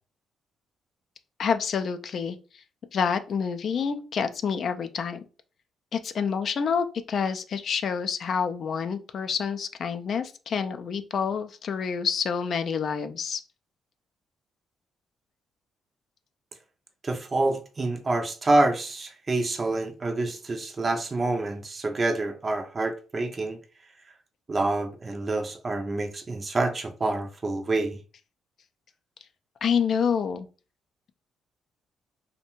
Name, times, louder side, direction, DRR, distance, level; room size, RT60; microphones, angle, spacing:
voice 1, 1.4-2.4 2.9-5.2 5.9-13.4 29.6-30.5, left 6 dB, 55° left, 0.3 m, -28 dB
voice 2, 17.0-23.6 24.5-28.0, right 2 dB, 30° right, 0.4 m, -27 dB
2.6 x 2.1 x 2.9 m
cardioid pair, 90°, 0 cm